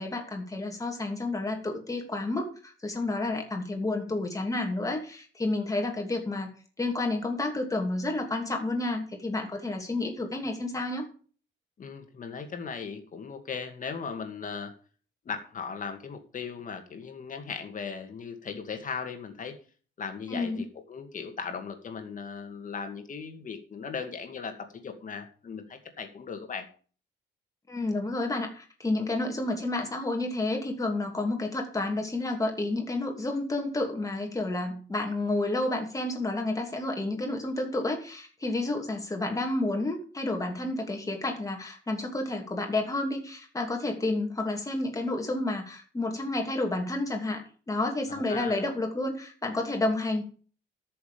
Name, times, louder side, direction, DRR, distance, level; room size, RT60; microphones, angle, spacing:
voice 1, 0.0-11.1 20.3-20.6 27.7-50.2, left 2 dB, 15° left, 2 dB, 2.8 m, -30 dB
voice 2, 11.8-14.7 15.2-19.5 20.0-26.7 48.1-48.6, left 5 dB, 40° left, 6 dB, 2.3 m, -38 dB
13.0 x 6.9 x 5.1 m, 0.41 s
cardioid pair, 150°, 21 cm